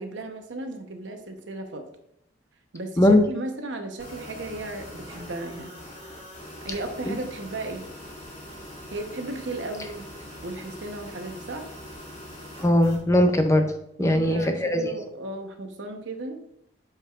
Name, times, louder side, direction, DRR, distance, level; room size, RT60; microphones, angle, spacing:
voice 1, 0.0-1.8 2.7-5.7 6.6-7.9 8.9-10.0 10.4-11.7 14.0-16.4, right 2 dB, 75° right, 5 dB, 0.9 m, -35 dB
sound 1, 4.0-13.0, left 1 dB, 30° left, 2.2 m, -42 dB
voice 2, 12.6-13.6 14.0-14.9, left 1 dB, 15° left, 6 dB, 0.4 m, -19 dB
8.6 x 4.6 x 2.4 m, 0.77 s
head